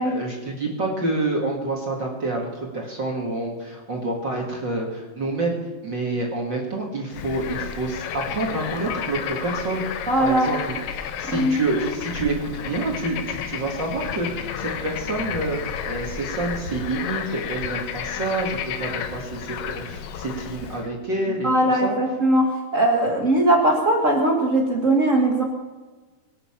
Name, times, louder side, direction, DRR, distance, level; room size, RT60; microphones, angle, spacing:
voice 1, 0.0-5.6 5.8-10.8 11.2-22.0, right 2 dB, 35° right, 0 dB, 2.2 m, -28 dB
Bird / Frog, 7.1-20.9, left 8 dB, 70° left, 2.5 m, -32 dB
voice 2, 10.1-10.5 11.3-11.6 21.4-25.4, right 1 dB, 65° right, 0 dB, 0.7 m, -20 dB
24.0 x 8.8 x 5.9 m, 1.3 s
omnidirectional pair, 4.3 m